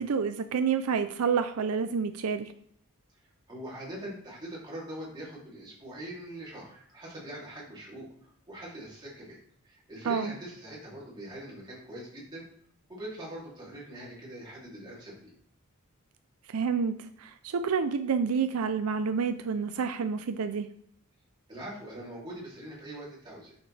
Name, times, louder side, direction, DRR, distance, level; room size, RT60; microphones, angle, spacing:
voice 1, 0.0-2.5 10.1-10.3 16.5-20.7, right 6 dB, 75° right, 9 dB, 0.4 m, -29 dB
voice 2, 3.5-9.4 9.6-12.5 12.9-15.3 21.5-23.6, right 1 dB, 20° right, -6 dB, 2.9 m, -42 dB
7.3 x 6.6 x 3.3 m, 0.67 s
head